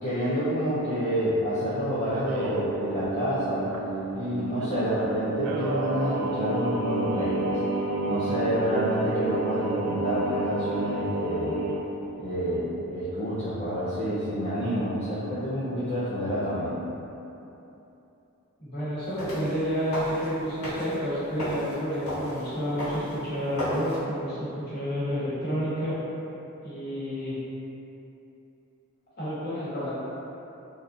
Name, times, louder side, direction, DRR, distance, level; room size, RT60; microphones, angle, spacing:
voice 1, 0.0-3.7 4.1-7.6 8.0-11.6 12.2-16.8, equal, 30° left, -12 dB, 0.5 m, -28 dB
Singing, 2.1-11.8, right 2 dB, 90° right, 0.3 m, -30 dB
voice 2, 18.6-26.0 26.6-27.4 29.2-29.9, equal, 50° left, -13 dB, 1.4 m, -30 dB
sound 1, 19.0-24.0, left 1 dB, 85° left, 1.5 m, -36 dB
3.8 x 2.4 x 2.6 m, 2.9 s
head